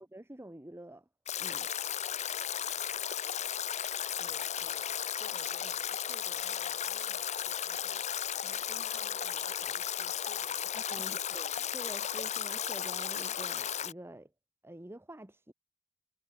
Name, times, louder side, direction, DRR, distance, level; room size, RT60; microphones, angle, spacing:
voice 1, 0.1-1.0 1.3-1.7 10.7-14.3 14.6-15.5, right 1 dB, 10° right, 1.1 m, -47 dB
Stream / Drip / Trickle dribble, 1.3-13.9, left 9 dB, 35° left, 0.7 m, -35 dB
voice 2, 4.2-4.9 5.2-8.1 8.4-11.2, right 1 dB, 30° right, 6.5 m, -56 dB
head